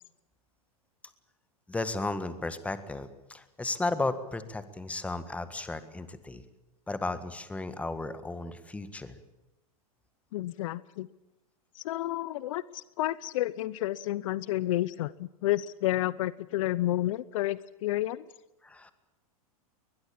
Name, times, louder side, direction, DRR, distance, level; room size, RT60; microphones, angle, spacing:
voice 1, 1.7-6.4 6.9-9.2 18.6-18.9, left 2 dB, 5° left, 12 dB, 1.7 m, -34 dB
voice 2, 10.3-11.1 11.7-18.3, left 15 dB, 60° left, 19 dB, 0.7 m, -30 dB
22.0 x 20.5 x 8.7 m, 0.98 s
hypercardioid pair, 130°, 19 cm